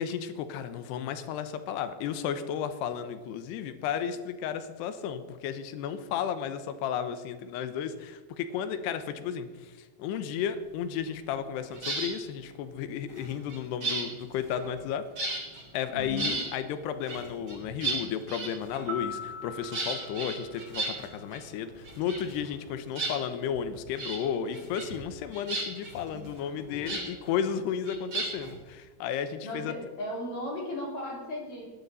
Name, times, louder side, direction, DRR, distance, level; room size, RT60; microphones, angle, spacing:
voice 1, 0.0-15.1 15.7-29.7, left 8 dB, 80° left, 10 dB, 2.5 m, -33 dB
sound 1, 11.7-12.1 13.1-14.9 15.2-15.6 16.0-16.5 17.1-19.0 19.7-21.4 21.7-22.6 22.9-23.6 24.0-24.2 24.5-25.0 25.3-27.1 27.8-28.5, right 2 dB, 35° right, 5.9 m, -34 dB
voice 2, 15.9-16.4 26.1-26.3 26.7-27.1 29.4-31.7, left 1 dB, 40° left, -2 dB, 3.8 m, -37 dB
sound 2, 18.9-21.4, left 3 dB, 80° right, 4.6 m, -41 dB
18.5 x 12.5 x 4.1 m, 1.3 s
omnidirectional pair, 5.8 m